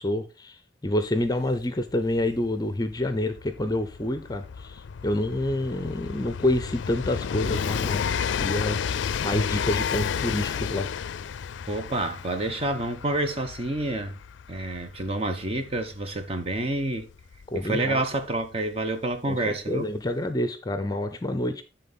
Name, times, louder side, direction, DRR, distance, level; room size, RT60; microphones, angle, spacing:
voice 1, 0.0-8.0 8.4-8.8 9.2-10.9 17.5-18.0 19.3-21.6, left 1 dB, 20° left, 0.6 m, -28 dB
Train, 1.2-1.3 1.5-18.1 19.1-19.2, left 7 dB, 90° left, 0.4 m, -32 dB
voice 2, 11.7-14.2 14.5-17.1 17.5-19.8, right 2 dB, 35° right, 1.0 m, -28 dB
10.5 x 3.8 x 4.1 m
head